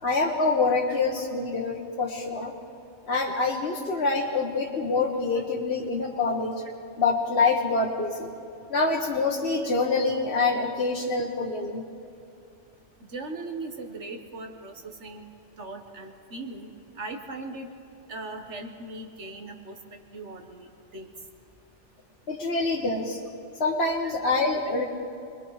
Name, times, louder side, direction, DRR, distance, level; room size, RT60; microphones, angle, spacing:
voice 1, 0.0-2.5 3.1-6.6 7.0-8.3 8.7-11.8 22.3-23.2 23.6-24.8, left 3 dB, 60° left, -1 dB, 1.5 m, -26 dB
voice 2, 13.0-15.3 15.6-17.7 18.1-21.1, right 2 dB, 70° right, 4 dB, 1.7 m, -39 dB
26.0 x 21.0 x 4.9 m, 2.7 s
omnidirectional pair, 1.2 m